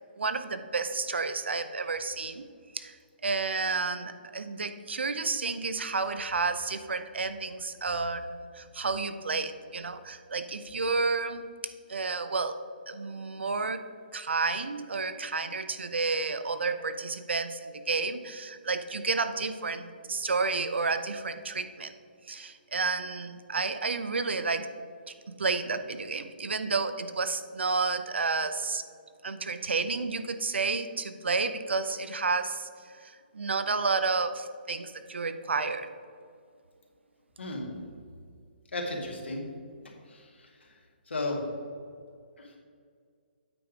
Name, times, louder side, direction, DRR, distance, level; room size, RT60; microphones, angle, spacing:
voice 1, 0.2-2.4 2.7-3.0 3.2-11.5 11.9-13.8 14.1-21.9 22.3-24.7 25.4-28.8 29.2-35.9, right 4 dB, 85° right, 10 dB, 0.6 m, -31 dB
voice 2, 37.4-37.7 38.7-39.4 40.1-40.5 41.1-41.4 42.4-42.5, left 2 dB, 90° left, 0 dB, 1.9 m, -34 dB
8.5 x 4.9 x 5.0 m, 2.2 s
hypercardioid pair, 155°, 6 cm